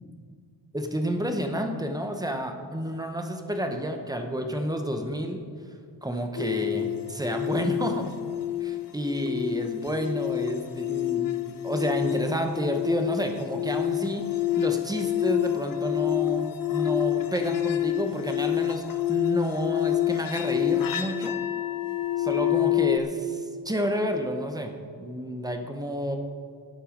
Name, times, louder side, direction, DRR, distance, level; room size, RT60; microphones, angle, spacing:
voice 1, 0.7-5.4 6.0-8.1 8.6-11.4 11.6-21.4 22.2-24.7 25.0-26.2, equal, 10° right, 5 dB, 0.8 m, -30 dB
sound 1, 6.4-23.0, left 14 dB, 45° left, 0.7 m, -28 dB
13.0 x 10.0 x 5.0 m, 2.2 s
wide cardioid pair, 155°, 45 cm